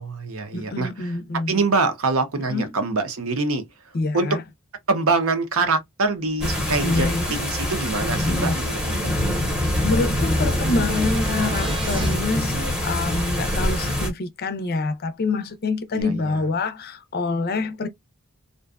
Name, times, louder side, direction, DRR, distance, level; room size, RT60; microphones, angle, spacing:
voice 1, 0.0-1.1 1.5-3.7 4.1-4.4 4.9-9.1 15.9-16.4, right 3 dB, 75° right, 0.7 m, -24 dB
voice 2, 0.5-1.6 2.5-2.7 3.9-4.4 6.8-7.3 8.3-8.6 9.8-17.9, left 3 dB, 45° left, 0.5 m, -26 dB
sound 1, 6.4-14.1, left 1 dB, 5° right, 0.7 m, -24 dB
sound 2, 10.9-12.1 16.0-16.1, right 3 dB, 25° right, 0.3 m, -33 dB
2.5 x 2.2 x 2.3 m
head